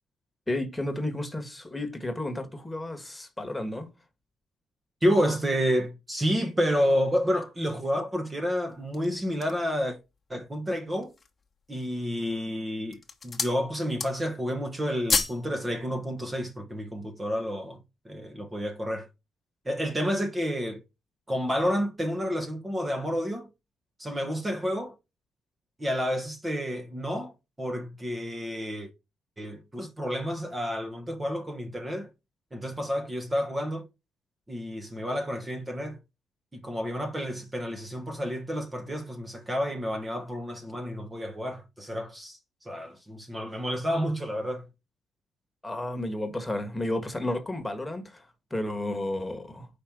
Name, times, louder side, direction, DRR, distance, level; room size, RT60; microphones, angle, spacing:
voice 1, 0.5-3.9 45.6-48.2 48.5-49.7, left 1 dB, 10° left, 1.6 m, -32 dB
voice 2, 5.0-10.0 10.3-11.1 11.7-13.0 13.2-17.8 18.0-19.1 19.6-20.8 21.3-23.5 24.0-24.9 25.8-27.3 27.6-28.9 29.4-32.1 32.5-33.9 34.5-36.0 36.5-44.7, equal, 20° right, 1.1 m, -30 dB
sound 1, 8.7-9.7 10.3-10.4 10.9-11.4 12.1-12.5 12.8-13.6 13.9-14.4 14.7-15.5 15.8-15.9, left 4 dB, 30° left, 1.2 m, -30 dB
5.2 x 4.3 x 6.0 m
cardioid pair, 90°, 0 cm